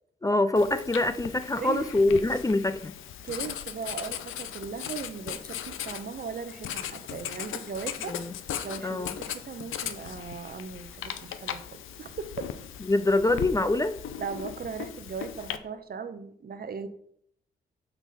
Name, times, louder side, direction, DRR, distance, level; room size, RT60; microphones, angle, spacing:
voice 1, 0.2-2.9 8.1-8.3 8.8-9.2 12.9-14.0, left 2 dB, 15° left, 0.5 m, -24 dB
Writing, 0.6-15.6, left 9 dB, 70° left, 0.6 m, -38 dB
voice 2, 3.2-8.2 8.6-11.6 12.0-12.6 14.2-16.9, right 5 dB, 45° right, 0.8 m, -38 dB
6.0 x 5.4 x 4.1 m
hypercardioid pair, 45°, 21 cm